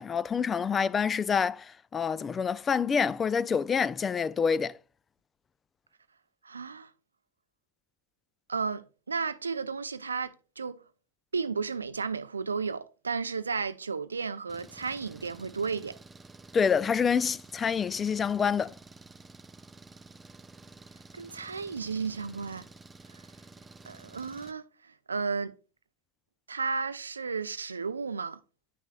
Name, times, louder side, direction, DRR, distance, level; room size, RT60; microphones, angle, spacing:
voice 1, 0.0-4.8 16.5-18.7, left 6 dB, 30° left, 0.3 m, -27 dB
voice 2, 6.4-6.9 8.5-10.8 11.3-16.0 21.1-22.7 23.1-23.2 23.9-25.5 26.5-28.4, right 5 dB, 90° right, 0.4 m, -33 dB
Engine, 14.5-24.5, right 3 dB, 15° right, 0.6 m, -51 dB
9.3 x 5.9 x 2.2 m
hypercardioid pair, 75°, 0 cm